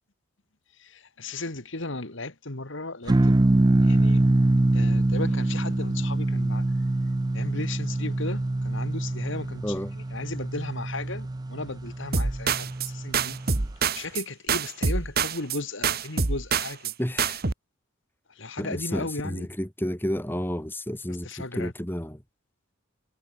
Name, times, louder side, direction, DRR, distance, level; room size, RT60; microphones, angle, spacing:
voice 1, 0.8-3.4 3.8-4.3 4.7-6.6 7.3-13.4 13.9-16.9 18.4-19.5 21.2-21.7, left 2 dB, 55° left, 2.1 m, -36 dB
sound 1, 3.1-13.6, right 2 dB, 20° right, 0.4 m, -24 dB
voice 2, 9.6-9.9 17.0-17.4 18.6-22.2, equal, 10° left, 2.3 m, -31 dB
sound 2, 12.1-12.9 13.1-14.2 14.5-15.6 15.8-16.9 17.2-17.5, right 5 dB, 45° right, 1.3 m, -26 dB
head